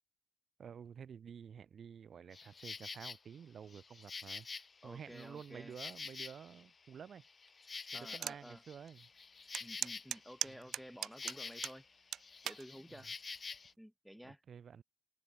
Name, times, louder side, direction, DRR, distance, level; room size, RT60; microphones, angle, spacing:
voice 1, 0.6-7.2 7.9-9.1 10.5-10.6 12.9-13.0 14.2-14.8, right 7 dB, 55° right, 3.1 m, -51 dB
Insect, 2.3-3.2 3.7-6.7 7.0-11.9 12.2-13.7, left 4 dB, 35° left, 0.3 m, -48 dB
voice 2, 4.8-5.8 7.9-8.6 9.6-11.8 12.4-13.1 13.8-14.4, equal, ahead, 3.1 m, -52 dB
sound 1, 8.2-8.4 8.9-9.0 9.5-11.8 12.1-12.6 13.4-13.7, right 10 dB, 70° right, 0.5 m, -39 dB
open air
cardioid pair, 90°, 0 cm